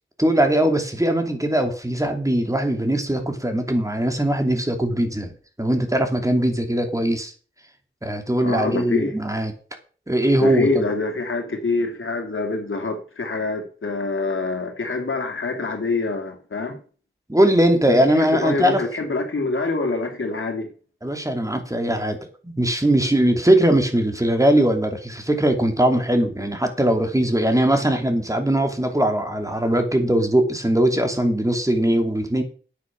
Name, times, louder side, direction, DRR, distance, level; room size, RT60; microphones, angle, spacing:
voice 1, 0.2-5.3 5.6-7.3 8.0-9.5 10.1-10.7 17.3-18.8 21.0-22.2 22.4-32.4, right 1 dB, 15° right, 2.6 m, -20 dB
voice 2, 8.4-9.1 10.4-16.8 17.9-20.7, left 3 dB, 80° left, 2.6 m, -25 dB
9.4 x 9.3 x 5.9 m
wide cardioid pair, 65°, 21 cm